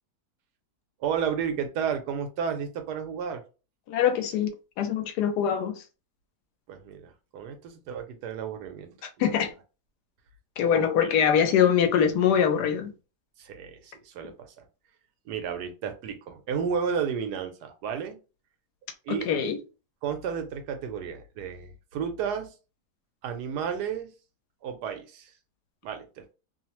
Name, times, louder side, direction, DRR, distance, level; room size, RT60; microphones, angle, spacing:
voice 1, 1.0-3.4 6.7-9.4 13.4-14.6 15.3-18.2 19.1-19.3 20.0-22.5 23.2-24.1 24.6-25.3 25.8-26.3, right 7 dB, 85° right, 1.2 m, -32 dB
voice 2, 3.9-4.5 4.8-5.8 9.2-9.5 10.6-12.9 19.1-19.6, left 8 dB, 85° left, 1.2 m, -23 dB
3.0 x 2.0 x 2.9 m
omnidirectional pair, 1.7 m